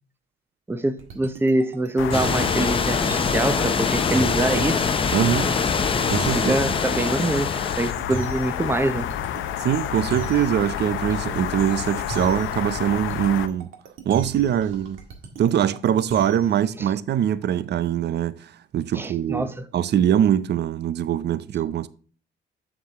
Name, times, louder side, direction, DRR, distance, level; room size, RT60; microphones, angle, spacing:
voice 1, 0.7-4.8 6.3-7.5 7.8-9.1 16.8-16.9 18.9-19.7, right 2 dB, 10° right, 0.7 m, -24 dB
sound 1, 1.0-16.6, right 5 dB, 80° right, 1.7 m, -37 dB
sound 2, 2.0-13.5, left 11 dB, 80° left, 0.6 m, -30 dB
sound 3, 2.1-7.9, left 5 dB, 25° left, 0.7 m, -24 dB
voice 2, 5.1-5.6 6.1-6.5 9.6-13.7 14.1-15.0 15.4-21.9, right 10 dB, 60° right, 0.6 m, -23 dB
7.2 x 6.8 x 3.5 m
cardioid pair, 90°, 20 cm